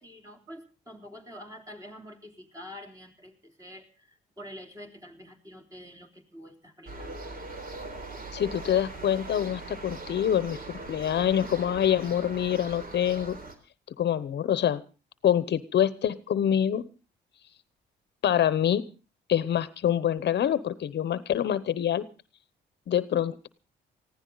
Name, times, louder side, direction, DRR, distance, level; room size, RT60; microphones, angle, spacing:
voice 1, 0.0-7.1, equal, 15° right, 4 dB, 3.6 m, -47 dB
sound 1, 6.9-13.6, right 2 dB, 45° right, 3.6 m, -41 dB
voice 2, 8.3-13.4 14.0-14.8 15.2-16.8 18.2-18.8 19.3-22.1 22.9-23.5, left 10 dB, 60° left, 15 dB, 0.9 m, -26 dB
20.0 x 15.5 x 4.0 m, 0.33 s
cardioid pair, 90°, 20 cm